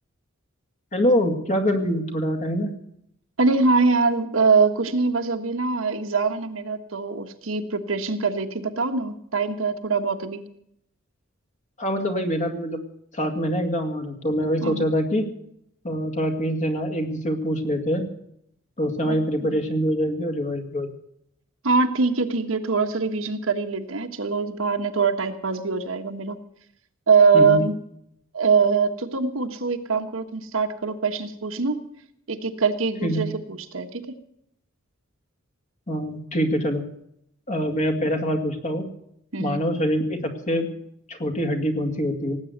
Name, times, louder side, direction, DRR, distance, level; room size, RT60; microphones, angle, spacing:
voice 1, 0.9-2.8 11.8-12.8 13.1-15.3 15.8-18.1 18.8-20.9 27.3-27.6 33.0-33.2 35.9-36.9 37.5-38.9 39.4-40.7 41.1-42.4, equal, 35° left, 5 dB, 2.1 m, -24 dB
voice 2, 3.4-10.4 14.6-14.9 19.1-19.6 21.6-26.4 27.1-27.7 28.3-31.8 32.3-34.0 39.3-39.6, right 4 dB, 80° right, 6 dB, 1.4 m, -23 dB
18.0 x 8.5 x 7.9 m, 0.74 s
head